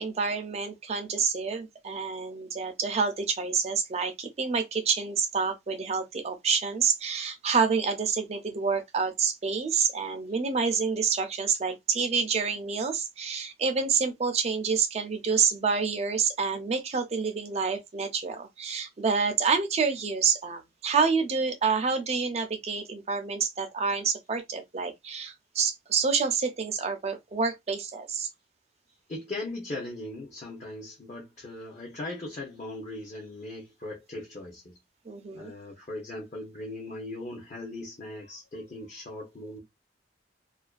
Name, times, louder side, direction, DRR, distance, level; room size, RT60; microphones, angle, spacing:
voice 1, 0.0-28.3 35.1-35.5, right 5 dB, 35° right, 0.4 m, -28 dB
voice 2, 29.1-34.8 35.3-39.6, left 2 dB, 40° left, 0.6 m, -39 dB
2.4 x 2.2 x 2.3 m
head